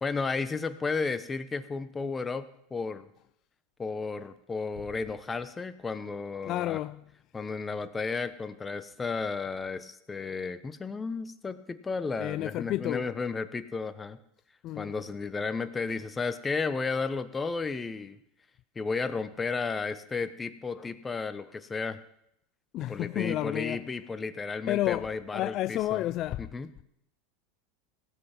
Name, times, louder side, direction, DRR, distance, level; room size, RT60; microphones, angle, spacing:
voice 1, 0.0-3.0 3.8-6.8 7.3-14.2 14.8-18.2 18.7-22.0 22.9-26.0 26.4-26.7, left 4 dB, 20° left, 1.0 m, -33 dB
voice 2, 6.5-7.0 12.2-13.1 14.6-14.9 22.7-23.8 24.7-26.4, left 15 dB, 45° left, 0.4 m, -31 dB
17.0 x 7.9 x 6.0 m
supercardioid pair, 110°, 0 cm